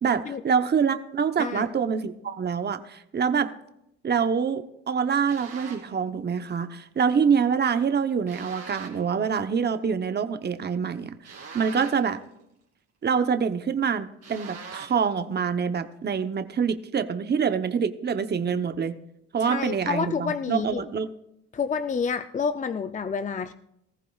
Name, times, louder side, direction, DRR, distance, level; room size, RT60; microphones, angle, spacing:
voice 1, 0.0-3.5 4.0-11.1 11.5-12.2 13.0-19.0 19.3-21.1, right 6 dB, 35° right, 9 dB, 0.9 m, -25 dB
sound 1, 5.3-6.0 8.3-9.1 11.2-12.2 14.2-15.1, right 5 dB, 55° right, 2.9 m, -42 dB
voice 2, 19.4-20.8 21.5-23.5, left 6 dB, 25° left, 10 dB, 0.5 m, -29 dB
19.0 x 14.5 x 2.4 m, 0.78 s
cardioid pair, 90°, 30 cm